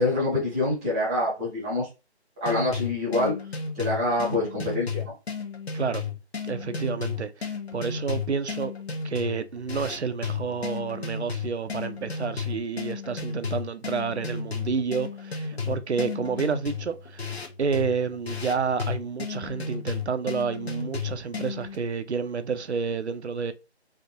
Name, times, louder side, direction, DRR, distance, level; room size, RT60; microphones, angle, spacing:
voice 1, 0.0-1.9 2.4-3.4 3.7-5.1 15.6-15.7, left 2 dB, 5° left, 0.7 m, -26 dB
sound 1, 2.4-21.8, left 5 dB, 65° left, 1.0 m, -33 dB
voice 2, 6.4-8.7 9.0-17.3 17.6-23.5, right 5 dB, 75° right, 0.6 m, -29 dB
3.4 x 2.6 x 2.8 m
figure-of-eight pair, 160°, 34 cm